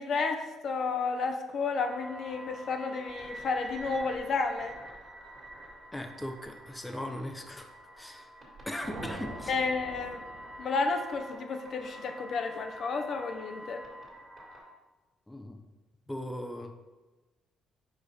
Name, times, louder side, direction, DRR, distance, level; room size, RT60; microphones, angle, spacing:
voice 1, 0.0-4.8 9.5-10.2 10.6-13.8, left 4 dB, 55° left, 6 dB, 0.6 m, -31 dB
sound 1, 1.8-14.6, right 1 dB, 30° right, 1.8 m, -47 dB
voice 2, 5.9-7.7 8.0-8.3 8.7-9.6 15.3-15.7 16.1-16.7, left 1 dB, 10° left, 4 dB, 0.5 m, -38 dB
sound 2, 8.8-11.0, right 2 dB, 70° right, 1.1 m, -44 dB
5.0 x 4.7 x 4.1 m, 1.2 s
cardioid pair, 95°, 0 cm